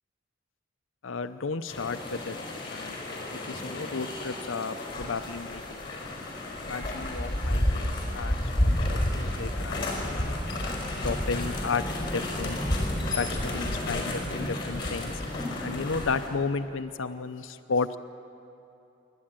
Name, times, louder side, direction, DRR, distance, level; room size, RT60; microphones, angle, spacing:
voice 1, 1.0-2.4 2.7-6.0 6.6-10.4 11.0-12.6 13.0-15.1 15.6-18.0, left 4 dB, 80° left, 11 dB, 0.6 m, -33 dB
sound 1, 1.7-16.3, left 1 dB, 25° left, 4.3 m, -31 dB
27.5 x 12.0 x 8.9 m, 2.8 s
head